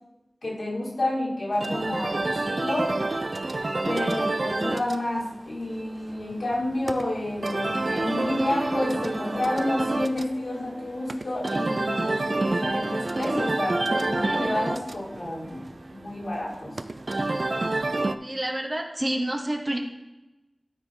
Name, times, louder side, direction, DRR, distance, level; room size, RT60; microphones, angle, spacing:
voice 1, 0.4-2.9 3.9-15.6 16.0-16.7, left 1 dB, 80° left, -4 dB, 2.4 m, -29 dB
sound 1, 1.5-18.1, right 2 dB, 65° right, 0.4 m, -29 dB
voice 2, 18.2-19.8, right 1 dB, 35° right, 2 dB, 1.3 m, -28 dB
13.0 x 4.7 x 3.8 m, 1.0 s
wide cardioid pair, 50°, 0 cm